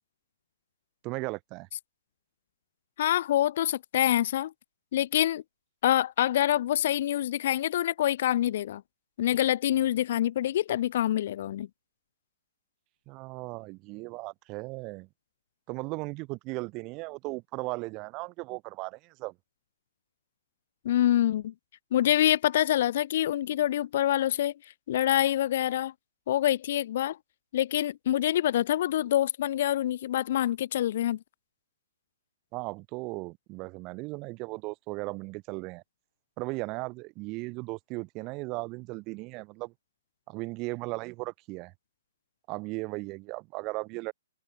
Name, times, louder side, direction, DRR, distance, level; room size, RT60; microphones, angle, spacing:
voice 1, 1.0-1.7 13.1-15.1 15.7-19.3 32.5-35.8 36.4-39.7 40.3-41.7 42.5-44.1, right 25 dB, 25° right, 1.5 m, -37 dB
voice 2, 3.0-4.5 4.9-5.4 5.8-8.8 9.2-11.7 20.8-21.5 21.9-24.5 24.9-25.9 26.3-27.2 27.5-31.2, left 12 dB, 45° left, 1.4 m, -26 dB
figure-of-eight pair, 125°, 0 cm